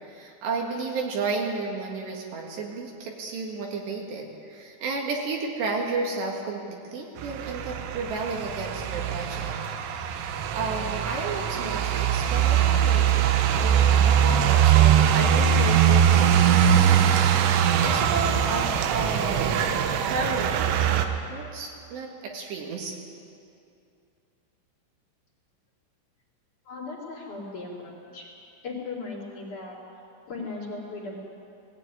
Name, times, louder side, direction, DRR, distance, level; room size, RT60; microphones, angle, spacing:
voice 1, 0.1-9.5 10.5-16.8 17.8-19.7 20.0-20.8 21.3-23.0, right 4 dB, 65° right, 0 dB, 3.7 m, -32 dB
sound 1, 7.2-21.1, right 9 dB, 85° right, 3.7 m, -21 dB
voice 2, 26.6-28.3 28.6-29.8 30.3-31.2, left 3 dB, 40° left, -5 dB, 4.7 m, -37 dB
18.5 x 18.0 x 9.6 m, 2.5 s
omnidirectional pair, 5.7 m